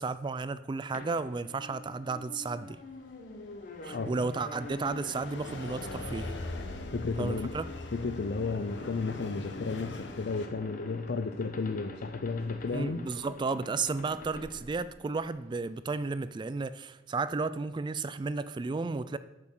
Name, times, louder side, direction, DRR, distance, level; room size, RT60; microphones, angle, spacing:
voice 1, 0.0-2.8 3.8-6.4 7.2-7.7 12.7-19.2, right 4 dB, 25° right, 0.3 m, -33 dB
sound 1, 0.9-15.5, left 2 dB, 50° left, 0.9 m, -46 dB
sound 2, 2.9-10.5, left 2 dB, 85° left, 1.0 m, -42 dB
voice 2, 6.9-7.5 7.9-13.0, left 4 dB, 65° left, 0.5 m, -33 dB
8.6 x 6.8 x 6.1 m
head